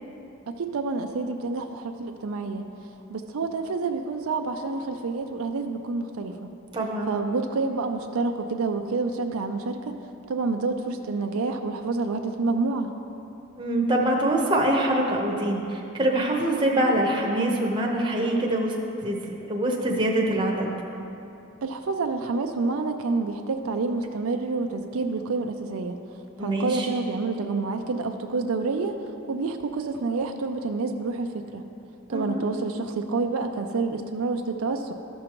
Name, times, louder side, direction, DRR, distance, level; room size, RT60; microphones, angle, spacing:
voice 1, 0.5-2.7 3.1-6.5 7.1-10.0 10.3-12.9 21.6-26.0 26.4-28.9 29.3-31.6 32.1-34.9, right 3 dB, 75° right, 5 dB, 0.4 m, -28 dB
voice 2, 6.7-7.1 13.6-18.7 19.0-20.7 26.4-26.9 32.1-32.4, right 1 dB, 20° right, -2 dB, 0.9 m, -24 dB
13.5 x 6.3 x 3.0 m, 2.8 s
head